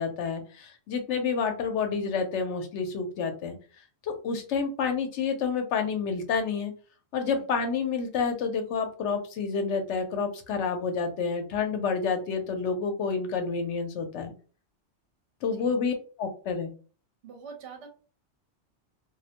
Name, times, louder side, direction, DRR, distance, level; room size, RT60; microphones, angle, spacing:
voice 1, 0.0-3.6 4.0-6.7 7.1-14.3 15.4-16.7, left 5 dB, 80° left, 6 dB, 0.9 m, -29 dB
voice 2, 17.2-17.9, right 6 dB, 75° right, 2 dB, 0.9 m, -45 dB
2.3 x 2.1 x 2.8 m, 0.39 s
omnidirectional pair, 1.2 m